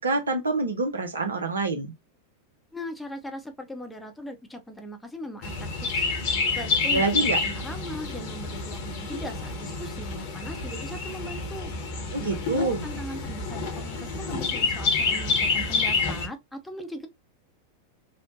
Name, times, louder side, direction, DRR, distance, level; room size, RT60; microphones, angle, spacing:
voice 1, 0.0-1.9 6.9-7.4 12.1-12.9, right 3 dB, 70° right, 0.5 m, -26 dB
voice 2, 2.7-6.2 6.6-11.7 12.1-17.1, equal, 5° left, 0.6 m, -39 dB
Chirp tweet, 5.4-16.3, left 4 dB, 50° left, 1.0 m, -28 dB
3.0 x 2.0 x 2.6 m
figure-of-eight pair, 90°, 0 cm